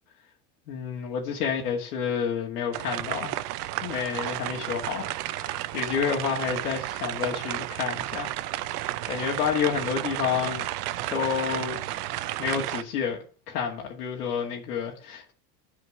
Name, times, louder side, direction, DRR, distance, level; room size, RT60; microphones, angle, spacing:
voice 1, 0.7-3.4 3.8-8.4 8.8-10.6 11.1-11.8 12.4-13.2 13.5-15.3, left 7 dB, 85° left, 2.2 m, -29 dB
sound 1, 2.7-12.8, right 15 dB, 85° right, 0.7 m, -32 dB
11.5 x 5.0 x 5.1 m
supercardioid pair, 100°, 45 cm